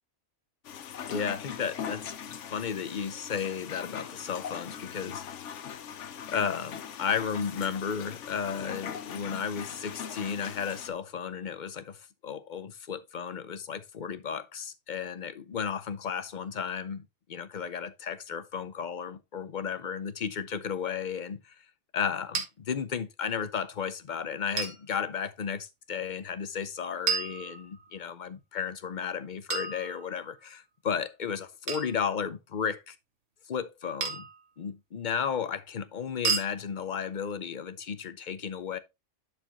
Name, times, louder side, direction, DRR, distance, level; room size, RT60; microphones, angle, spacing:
sound 1, 0.6-10.9, left 8 dB, 70° left, 1.0 m, -41 dB
voice 1, 1.1-5.7 6.3-21.6 21.9-33.0 33.5-34.3 34.6-38.8, left 7 dB, 45° left, 0.7 m, -34 dB
sound 2, 22.3-22.5 24.6-24.8 27.1-28.0 29.5-30.4 31.7-32.0 34.0-34.4 36.2-36.5, right 5 dB, 75° right, 1.8 m, -31 dB
11.0 x 4.5 x 2.9 m
omnidirectional pair, 1.3 m